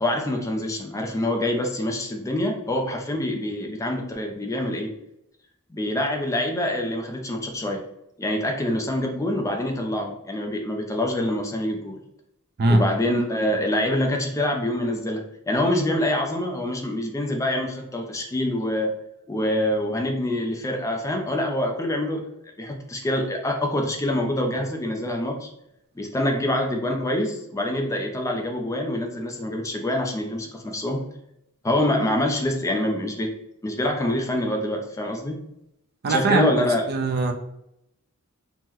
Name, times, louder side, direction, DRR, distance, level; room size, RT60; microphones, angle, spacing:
voice 1, 0.0-4.9 5.7-7.8 8.2-12.0 12.7-19.0 19.3-22.2 22.6-25.5 26.0-31.0 31.6-33.3 33.6-35.4 36.1-36.8, left 1 dB, 15° left, 2 dB, 0.4 m, -25 dB
voice 2, 36.0-37.3, right 2 dB, 45° right, 4 dB, 0.4 m, -21 dB
2.9 x 2.0 x 3.6 m, 0.80 s
head